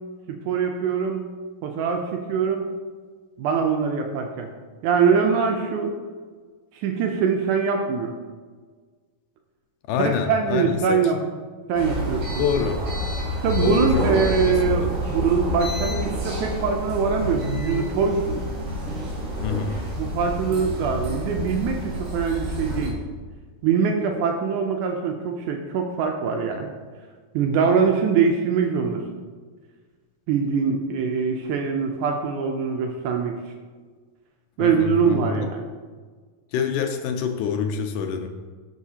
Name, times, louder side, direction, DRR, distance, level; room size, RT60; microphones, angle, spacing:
voice 1, 0.5-1.2 1.6-2.7 3.4-4.5 4.8-5.9 6.7-8.1 10.0-11.2 11.7-12.5 13.4-18.4 20.0-23.0 23.6-26.7 27.3-29.0 30.3-33.4 34.6-35.7, right 6 dB, 80° right, 3 dB, 1.9 m, -23 dB
voice 2, 9.9-11.1 12.4-12.8 13.6-15.0 19.4-19.8 34.6-35.5 36.5-38.3, left 6 dB, 80° left, 5 dB, 2.0 m, -26 dB
sound 1, 11.7-22.9, left 1 dB, 55° right, 3.1 m, -28 dB
12.0 x 4.9 x 2.8 m, 1.5 s
omnidirectional pair, 3.9 m